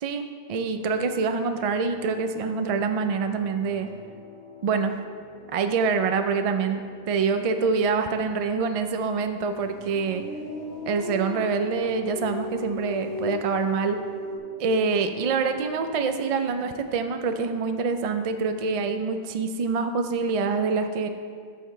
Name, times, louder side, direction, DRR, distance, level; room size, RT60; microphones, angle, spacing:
voice 1, 0.0-3.9 4.6-4.9 5.5-10.2 10.9-14.0 14.6-21.1, right 5 dB, 60° right, 7 dB, 0.3 m, -26 dB
sound 1, 0.8-19.0, left 2 dB, 5° left, 2.0 m, -48 dB
sound 2, 9.6-14.4, equal, 85° left, 1.5 m, -35 dB
13.5 x 5.8 x 3.1 m, 2.1 s
omnidirectional pair, 1.1 m